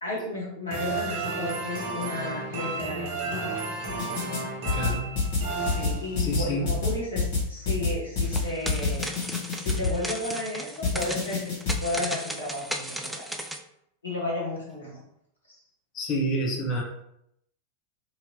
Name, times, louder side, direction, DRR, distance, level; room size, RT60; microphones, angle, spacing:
voice 1, 0.0-3.6 5.6-9.1 9.5-11.4 11.8-13.3 14.0-15.0 15.5-15.6, left 2 dB, 80° left, -5 dB, 0.9 m, -33 dB
sound 1, 0.7-6.4, right 3 dB, 50° right, 0.8 m, -33 dB
sound 2, 3.9-4.4 4.7-10.0 10.8-11.8, left 4 dB, 50° left, 1.2 m, -27 dB
voice 2, 4.7-5.1 6.2-6.7 15.9-16.8, right 1 dB, 30° left, 0 dB, 0.8 m, -28 dB
sound 3, 8.2-13.6, right 1 dB, 5° right, 0.3 m, -36 dB
3.0 x 2.8 x 2.7 m, 0.76 s
figure-of-eight pair, 90°, 0 cm